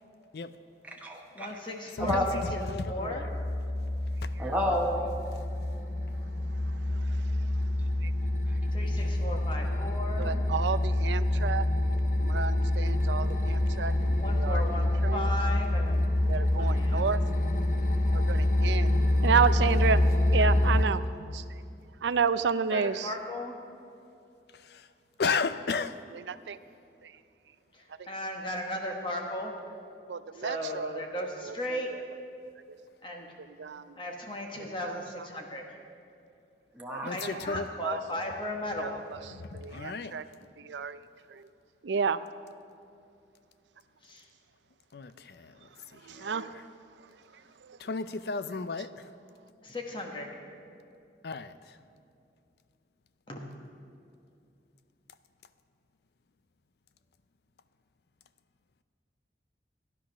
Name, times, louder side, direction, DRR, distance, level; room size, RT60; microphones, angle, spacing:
voice 1, 0.8-1.5 2.0-2.3 4.4-5.0 8.5-8.6 36.8-37.1, left 1 dB, 10° right, 1.0 m, -30 dB
voice 2, 1.3-2.4 2.9-3.3 8.7-10.4 14.2-16.2 16.6-17.1 22.7-23.5 27.7-29.5 30.3-31.9 33.0-33.3 34.0-35.6 37.1-39.0 44.0-44.2 49.6-50.3 53.3-53.5, left 1 dB, 30° left, 1.2 m, -36 dB
voice 3, 2.0-3.2 24.7-24.8 25.2-26.0 37.0-37.7 39.3-40.1 44.9-45.5 46.2-46.6 47.8-48.9 51.2-51.5, left 4 dB, 65° left, 0.5 m, -33 dB
sound 1, 2.0-20.9, left 1 dB, 50° left, 1.0 m, -27 dB
voice 4, 10.2-11.6 12.2-14.6 15.0-15.3 16.3-17.2 18.1-20.0 20.3-21.0 21.3-21.4 22.0-23.1 26.3-26.6 30.1-31.0 31.5-31.6 31.9-32.0 33.6-33.8 34.8-34.9 37.8-38.0 39.5-40.2 40.6-41.0 41.8-42.2 46.1-46.5, right 6 dB, 90° right, 0.5 m, -30 dB
13.0 x 10.5 x 6.2 m
head